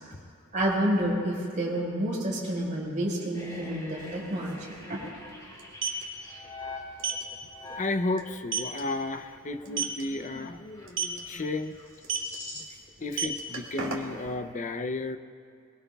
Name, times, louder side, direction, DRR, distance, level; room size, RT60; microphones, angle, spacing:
voice 1, 0.5-4.6 4.9-5.0, right 1 dB, 35° right, -4 dB, 5.1 m, -29 dB
sound 1, 3.3-12.9 13.1-13.4, left 2 dB, 15° left, 2.2 m, -45 dB
sound 2, 4.0-4.1 4.3-4.5 5.5-6.0 7.0-7.2 7.7-7.8 8.2-8.3 8.5-8.8 9.7-10.0 10.9-11.2 12.0-12.4 13.0-14.3, right 6 dB, 60° right, 2.3 m, -30 dB
voice 2, 7.8-11.8 13.0-15.2, left 2 dB, 35° left, 8 dB, 0.6 m, -33 dB
23.0 x 22.5 x 2.4 m, 2.4 s
head